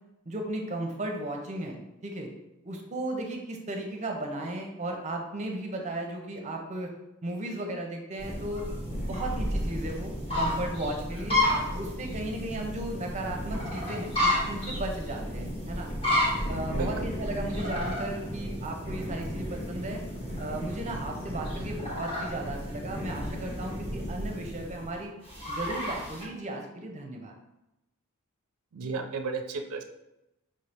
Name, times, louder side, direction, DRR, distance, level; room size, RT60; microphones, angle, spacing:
voice 1, 0.3-2.3 2.6-6.9 7.2-8.7 9.0-11.4 11.7-15.9 16.5-20.0 20.4-25.1 25.5-27.3, right 1 dB, 35° right, 2 dB, 0.6 m, -35 dB
sound 1, 8.2-26.3, left 1 dB, 25° left, 1.4 m, -32 dB
voice 2, 16.7-17.1 28.7-29.8, right 4 dB, 75° right, 5 dB, 0.5 m, -33 dB
5.3 x 2.7 x 3.3 m, 0.92 s
head